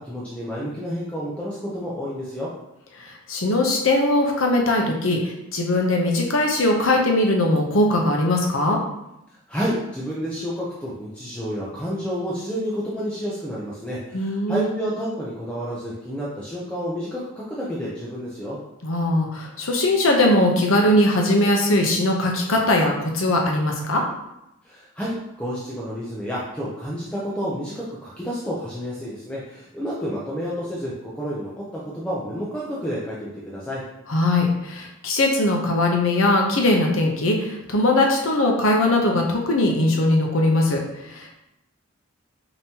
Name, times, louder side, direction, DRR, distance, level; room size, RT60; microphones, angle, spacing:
voice 1, 0.0-2.5 9.5-18.6 24.6-33.8, equal, 5° left, -7 dB, 0.5 m, -30 dB
voice 2, 3.0-8.8 14.1-14.7 18.8-24.0 34.1-41.3, left 1 dB, 70° left, 1 dB, 0.8 m, -20 dB
5.3 x 2.9 x 2.8 m, 0.87 s
head